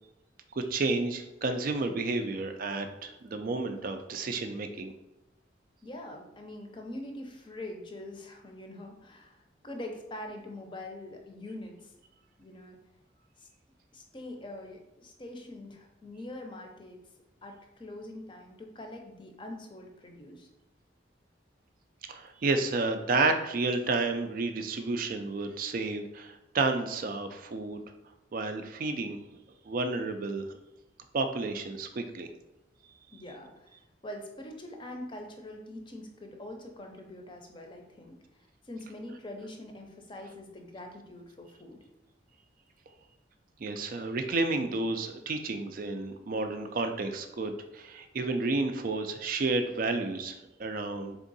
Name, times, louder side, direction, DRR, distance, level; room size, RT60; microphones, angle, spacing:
voice 1, 0.6-4.9 22.1-27.8 28.3-29.2 29.7-30.4 31.1-32.3 43.6-51.2, right 3 dB, 50° right, 7 dB, 0.4 m, -31 dB
voice 2, 5.8-11.9 12.4-12.8 13.4-13.5 13.9-17.0 17.4-20.5 33.1-38.2 38.6-41.8, left 1 dB, 25° left, 3 dB, 0.6 m, -44 dB
3.6 x 3.5 x 4.0 m, 0.92 s
head